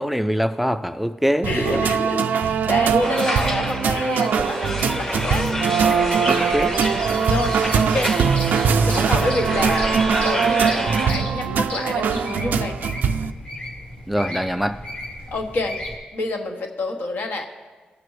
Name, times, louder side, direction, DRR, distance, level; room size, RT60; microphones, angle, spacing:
voice 1, 0.0-1.8 6.3-6.7 14.1-14.8, equal, 5° right, 11 dB, 0.3 m, -23 dB
voice 2, 1.4-5.6 7.2-8.2 8.6-12.8 15.3-15.8 16.1-17.4, left 2 dB, 75° left, 3 dB, 1.1 m, -28 dB
sound 1, 1.4-13.3, right 6 dB, 85° right, 0.3 m, -21 dB
sound 2, 3.0-11.1, left 1 dB, 20° left, 0.8 m, -29 dB
sound 3, 5.8-15.9, left 1 dB, 45° left, 2.0 m, -34 dB
17.0 x 6.7 x 3.2 m, 1.4 s
cardioid pair, 95°, 3 cm